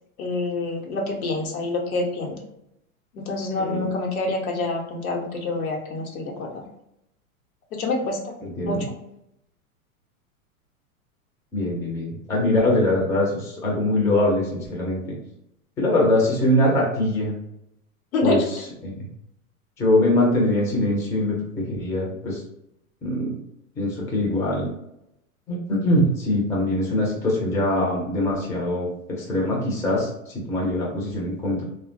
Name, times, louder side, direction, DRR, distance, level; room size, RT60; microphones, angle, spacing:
voice 1, 0.2-2.4 3.1-6.6 7.7-8.4 8.6-8.9 18.1-18.4, left 2 dB, 75° left, 1 dB, 0.9 m, -27 dB
voice 2, 3.6-3.9 8.4-8.8 11.5-15.0 15.8-17.3 18.2-18.4 18.8-18.9 19.8-22.4 23.0-23.4 23.8-24.7 25.5-28.9 29.2-31.6, left 1 dB, 5° left, -3 dB, 0.4 m, -22 dB
3.0 x 2.1 x 2.6 m, 0.81 s
hypercardioid pair, 115°, 43 cm